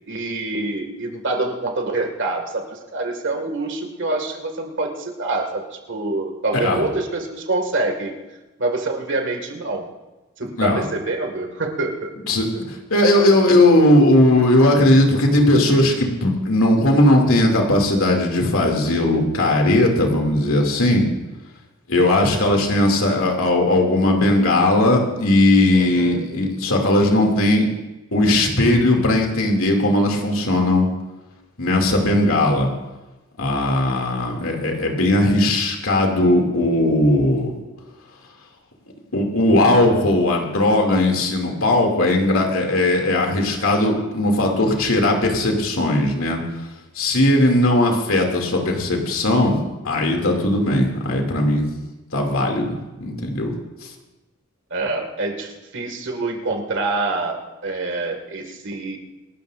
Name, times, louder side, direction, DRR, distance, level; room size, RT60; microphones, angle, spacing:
voice 1, 0.1-8.1 8.6-9.9 10.4-12.1 25.7-26.5 54.7-59.0, right 2 dB, 60° right, 3 dB, 2.1 m, -26 dB
voice 2, 12.3-21.1 21.9-27.7 28.1-30.9 31.6-32.7 33.4-37.5 39.1-46.4 46.9-49.6 49.8-51.7 52.1-53.5, left 1 dB, 80° left, 1 dB, 2.6 m, -18 dB
26.5 x 13.0 x 2.6 m, 1.1 s
head